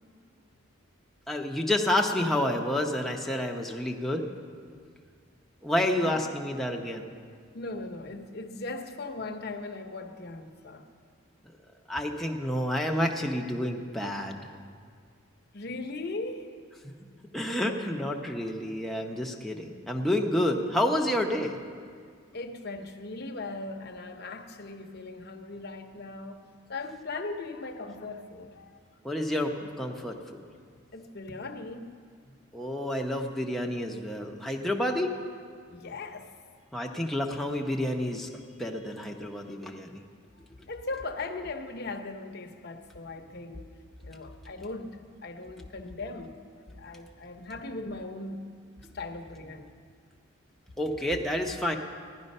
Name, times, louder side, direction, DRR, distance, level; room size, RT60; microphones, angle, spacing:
voice 1, 1.3-4.3 5.6-7.1 11.9-14.5 17.3-21.6 29.0-30.4 32.5-35.1 36.7-38.3 38.6-40.0 50.8-51.8, left 1 dB, ahead, 0 dB, 0.8 m, -29 dB
voice 2, 7.5-10.8 15.5-16.5 22.3-28.7 30.9-31.9 32.2-32.4 35.7-36.3 40.6-43.7 44.0-48.5 48.9-49.7, left 3 dB, 50° left, 4 dB, 0.9 m, -39 dB
15.5 x 11.5 x 5.4 m, 2.1 s
head